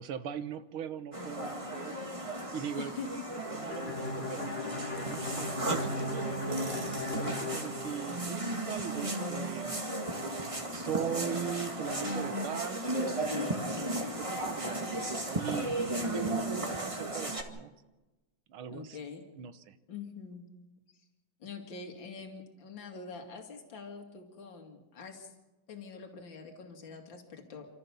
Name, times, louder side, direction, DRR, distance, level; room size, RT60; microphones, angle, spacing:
voice 1, 0.0-2.9 3.5-9.7 10.7-13.7 14.0-14.9 15.3-17.7 18.5-19.0 19.4-19.8, right 8 dB, 85° right, 11 dB, 2.0 m, -40 dB
sound 1, 1.1-17.4, right 1 dB, 15° right, 1.9 m, -35 dB
voice 2, 2.8-3.1 3.5-3.7 13.5-14.0 18.7-19.2 19.9-20.5 21.4-25.3 25.7-27.8, left 5 dB, 65° left, 3 dB, 3.0 m, -45 dB
Bowed string instrument, 3.7-8.5, left 2 dB, 30° left, 1.7 m, -38 dB
29.5 x 13.5 x 7.1 m, 1.1 s
omnidirectional pair, 2.3 m